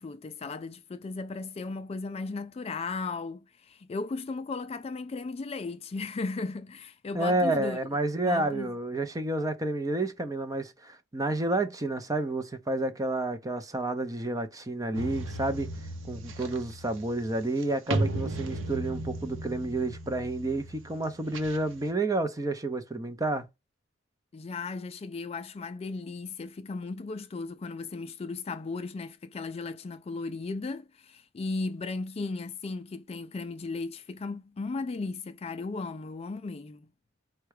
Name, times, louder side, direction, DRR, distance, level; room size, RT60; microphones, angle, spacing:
voice 1, 0.0-7.8 8.2-8.7 24.3-36.9, left 3 dB, 30° left, 0.3 m, -36 dB
voice 2, 7.1-15.7 16.1-23.5, right 2 dB, 15° right, 0.5 m, -30 dB
sound 1, 14.9-21.9, right 1 dB, 70° right, 0.8 m, -35 dB
4.6 x 2.2 x 4.7 m
head